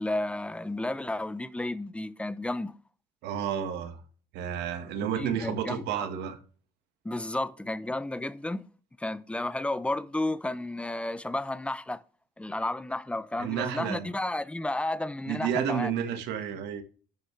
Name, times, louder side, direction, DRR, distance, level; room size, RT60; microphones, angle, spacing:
voice 1, 0.0-2.7 5.2-6.1 7.0-8.7 9.0-12.0 12.4-15.9, left 2 dB, 5° left, 0.7 m, -32 dB
voice 2, 3.2-4.0 4.3-6.4 13.4-14.1 15.3-16.8, right 8 dB, 85° right, 1.6 m, -31 dB
11.5 x 8.6 x 3.3 m
cardioid pair, 110°, 17 cm